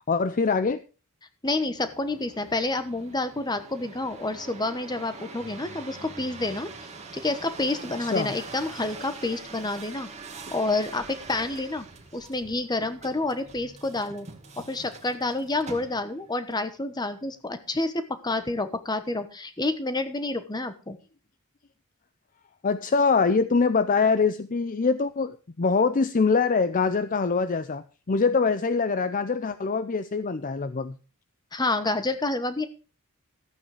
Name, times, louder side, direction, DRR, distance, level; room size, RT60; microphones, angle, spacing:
voice 1, 0.1-0.8 8.0-8.3 22.6-31.0, left 4 dB, 35° left, 12 dB, 0.5 m, -24 dB
voice 2, 1.4-6.7 7.1-10.1 10.5-11.9 12.1-14.3 14.6-21.0 31.5-32.7, left 2 dB, 20° left, 10 dB, 1.1 m, -29 dB
sound 1, 1.8-16.3 16.9-17.4, right 4 dB, 30° right, 2.0 m, -44 dB
13.5 x 8.8 x 4.9 m, 0.35 s
head